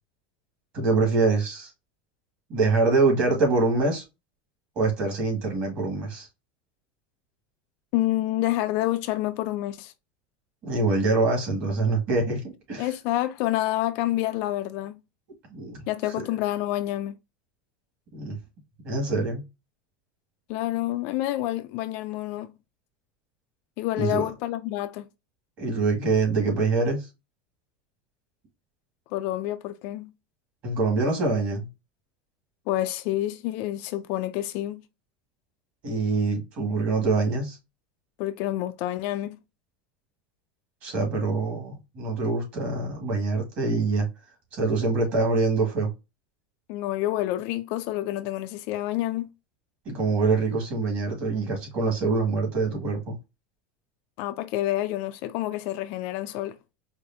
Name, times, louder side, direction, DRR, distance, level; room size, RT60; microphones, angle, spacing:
voice 1, 0.7-1.7 2.5-4.0 4.8-6.3 10.6-12.9 15.5-15.9 18.1-18.3 18.8-19.4 24.0-24.3 25.6-27.1 30.6-31.7 35.8-37.6 40.8-44.1 44.5-45.9 49.9-53.2, right 3 dB, 35° right, 1.9 m, -25 dB
voice 2, 7.9-9.9 12.8-15.0 15.9-17.2 20.5-22.5 23.8-25.1 29.1-30.1 32.7-34.8 38.2-39.4 46.7-49.3 54.2-56.6, left 15 dB, 45° left, 0.3 m, -28 dB
4.7 x 2.5 x 2.7 m
supercardioid pair, 170°, 5 cm